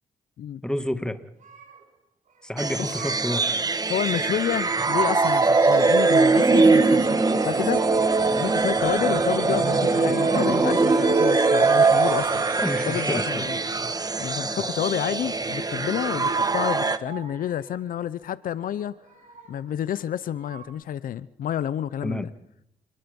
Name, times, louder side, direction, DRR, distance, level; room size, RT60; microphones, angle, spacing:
voice 1, 0.6-1.2 2.4-3.6 12.6-13.5 14.6-14.7 22.0-22.3, left 1 dB, 5° left, 2.0 m, -29 dB
sound 1, 1.4-2.0 2.3-3.9 4.5-5.7 6.7-8.0 9.6-10.8 11.3-12.6 13.0-14.3 16.2-17.8 18.6-19.8 20.3-20.7, right 7 dB, 65° right, 4.8 m, -47 dB
sound 2, 2.6-17.0, right 3 dB, 25° right, 1.4 m, -22 dB
voice 2, 3.9-7.8 8.3-12.4 12.9-13.6 14.2-19.0 19.5-22.3, left 10 dB, 80° left, 0.7 m, -29 dB
sound 3, 3.9-13.3, right 9 dB, 85° right, 2.0 m, -41 dB
28.0 x 20.0 x 5.4 m
cardioid pair, 75°, 14 cm